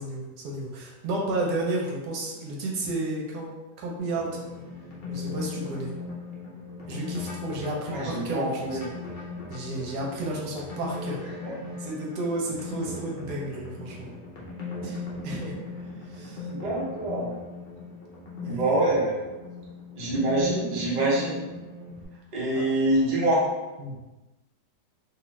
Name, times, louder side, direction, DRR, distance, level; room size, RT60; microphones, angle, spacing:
voice 1, 0.0-3.5 3.8-4.3 5.1-5.9 6.9-8.8 9.5-11.2 11.8-14.1 14.8-15.6 16.1-16.5 18.4-18.8 22.6-22.7 23.8-24.0, right 2 dB, 75° right, -2 dB, 1.2 m, -32 dB
sound 1, 4.0-22.0, left 3 dB, 50° left, 0.6 m, -38 dB
voice 2, 7.9-8.8 11.4-11.5 16.5-17.3 18.4-19.2 20.0-21.4 22.3-23.5, right 1 dB, 40° right, -6 dB, 0.6 m, -25 dB
2.8 x 2.4 x 3.1 m, 1.1 s
omnidirectional pair, 1.8 m